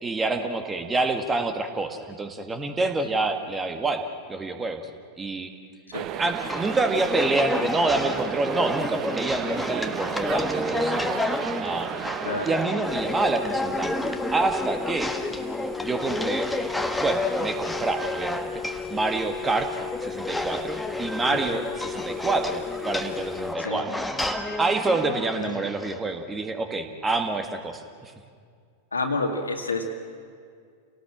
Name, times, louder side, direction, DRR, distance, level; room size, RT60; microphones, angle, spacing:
voice 1, 0.0-4.0 4.3-4.8 5.2-5.5 6.2-11.2 11.6-11.9 12.5-13.9 14.3-15.1 15.8-16.5 17.0-18.5 18.9-23.9 24.6-28.1, right 3 dB, 15° right, 6 dB, 1.8 m, -27 dB
sound 1, 5.9-12.7, right 11 dB, 35° right, 0.9 m, -34 dB
sound 2, 6.3-26.0, left 1 dB, 5° left, 1.6 m, -31 dB
voice 2, 12.2-12.6 21.3-21.4 23.6-23.9 25.1-25.6 28.9-29.9, left 2 dB, 75° left, 4 dB, 2.3 m, -30 dB
sound 3, 12.8-23.6, left 8 dB, 20° left, 0.7 m, -36 dB
29.0 x 18.0 x 7.5 m, 2.2 s
figure-of-eight pair, 90°, 0 cm